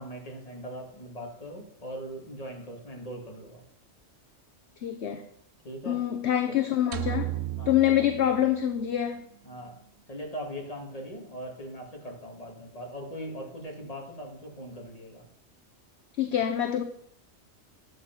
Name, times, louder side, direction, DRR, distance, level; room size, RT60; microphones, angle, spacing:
voice 1, 0.0-3.7 5.6-6.0 6.4-6.6 7.6-8.0 9.4-9.8 10.1-15.2, equal, 25° left, 1 dB, 2.3 m, -40 dB
voice 2, 4.8-5.3 5.8-7.3 7.7-9.2 16.2-16.8, left 11 dB, 60° left, 6 dB, 1.0 m, -25 dB
sound 1, 6.9-9.2, right 15 dB, 70° right, 1.0 m, -35 dB
11.5 x 8.3 x 5.9 m, 0.71 s
omnidirectional pair, 1.4 m